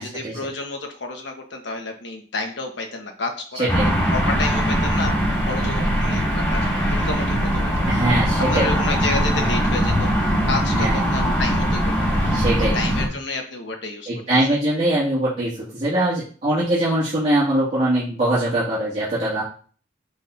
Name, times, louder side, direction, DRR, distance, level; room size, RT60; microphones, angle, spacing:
voice 1, 0.0-3.7 4.1-5.1 5.5-8.0 8.4-10.1 10.4-12.3 12.7-14.4, left 3 dB, 70° left, 4 dB, 1.2 m, -30 dB
sound 1, 3.7-13.1, equal, 15° left, 2.7 m, -21 dB
voice 2, 7.9-8.7 10.8-11.0 12.3-12.7 14.1-19.4, right 1 dB, 35° right, -10 dB, 2.2 m, -22 dB
6.0 x 5.9 x 2.7 m, 0.43 s
head